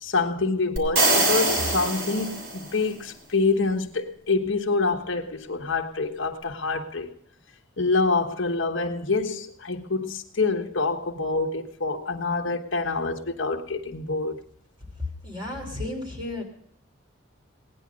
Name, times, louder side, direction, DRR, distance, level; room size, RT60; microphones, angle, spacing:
voice 1, 0.0-7.1 7.8-14.4, left 3 dB, 65° left, 1.4 m, -26 dB
sound 1, 0.8-2.8, right 2 dB, 65° right, 3.2 m, -23 dB
voice 2, 15.2-16.4, left 2 dB, 25° right, 3.5 m, -33 dB
18.0 x 9.7 x 5.3 m
head